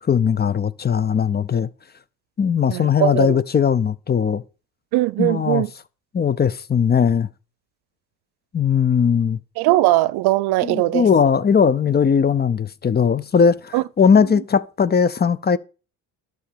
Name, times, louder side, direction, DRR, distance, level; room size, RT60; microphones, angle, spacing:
voice 1, 0.0-1.7 2.4-4.4 5.2-5.6 6.1-7.3 8.5-9.4 10.6-15.6, left 6 dB, 25° left, 0.6 m, -19 dB
voice 2, 2.7-3.4 4.9-5.7 9.6-11.1 13.7-13.8, right 18 dB, 75° right, 0.6 m, -19 dB
11.5 x 6.3 x 6.8 m
cardioid pair, 95°, 38 cm